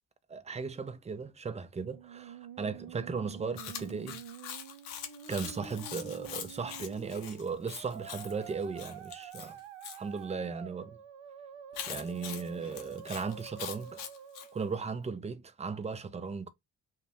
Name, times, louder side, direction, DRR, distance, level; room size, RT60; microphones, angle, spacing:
voice 1, 0.3-4.2 5.3-9.6 9.9-11.0 11.9-14.0 14.5-16.5, right 5 dB, 15° right, 0.4 m, -37 dB
Musical instrument, 1.8-14.8, right 8 dB, 75° right, 0.6 m, -48 dB
Chewing mastication, 3.6-10.0 11.7-14.5, left 9 dB, 90° left, 0.6 m, -43 dB
2.3 x 2.2 x 3.2 m
hypercardioid pair, 45°, 49 cm